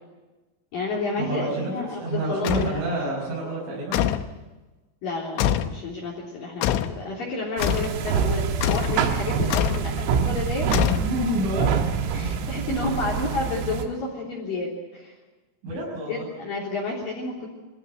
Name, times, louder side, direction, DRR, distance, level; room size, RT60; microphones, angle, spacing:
voice 1, 0.7-2.8 5.0-10.7 12.1-15.1 16.1-17.5, left 3 dB, 45° left, -2 dB, 4.7 m, -30 dB
voice 2, 1.3-1.7 2.0-4.1 10.8-11.8 12.2-12.5 15.6-16.3, right 1 dB, 60° right, -6 dB, 8.4 m, -28 dB
sound 1, 2.5-2.8 3.9-4.3 5.4-5.8 6.6-7.0 7.6-8.0 8.6-9.0 9.5-9.9 10.7-11.4, left 11 dB, 75° left, 2.9 m, -24 dB
sound 2, 7.6-13.9, right 6 dB, 85° right, 4.3 m, -26 dB
25.0 x 15.5 x 9.9 m, 1.2 s
omnidirectional pair, 6.0 m